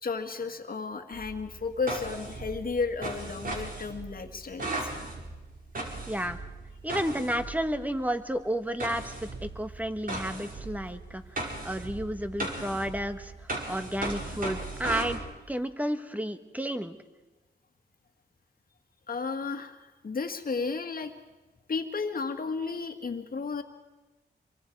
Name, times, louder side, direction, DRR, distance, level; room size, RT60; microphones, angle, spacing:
voice 1, 0.0-4.9 19.1-21.1 21.7-23.6, left 4 dB, 55° left, 6 dB, 2.0 m, -33 dB
sound 1, 1.1-8.0 8.8-15.2, right 2 dB, 50° right, 5.2 m, -37 dB
voice 2, 6.1-6.4 6.8-17.0, equal, 10° right, 9 dB, 1.5 m, -32 dB
26.0 x 23.5 x 4.8 m, 1.1 s
cardioid pair, 65°, 18 cm